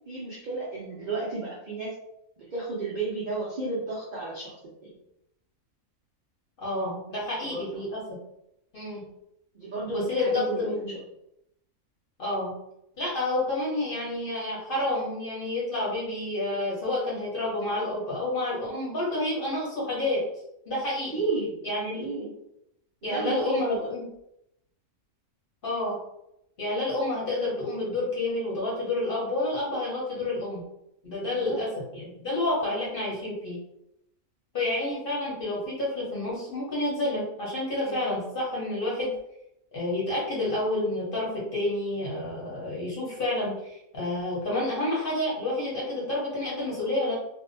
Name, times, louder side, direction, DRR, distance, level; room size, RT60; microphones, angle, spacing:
voice 1, 0.1-1.9 2.4-4.5 4.8-4.9 7.4-7.9 9.5-11.0 21.1-22.3 23.0-23.9 31.2-31.6 37.8-38.0, right 3 dB, 75° right, -5 dB, 0.4 m, -33 dB
voice 2, 6.6-8.2 8.7-9.0 9.9-10.9 12.2-12.5 13.0-20.2 20.7-21.1 21.6-22.0 23.0-24.0 25.6-26.0 26.6-30.6 31.0-33.6 34.5-39.1 39.7-47.1, left 2 dB, 45° left, -5 dB, 0.8 m, -29 dB
2.6 x 2.2 x 2.5 m, 0.81 s
omnidirectional pair, 1.6 m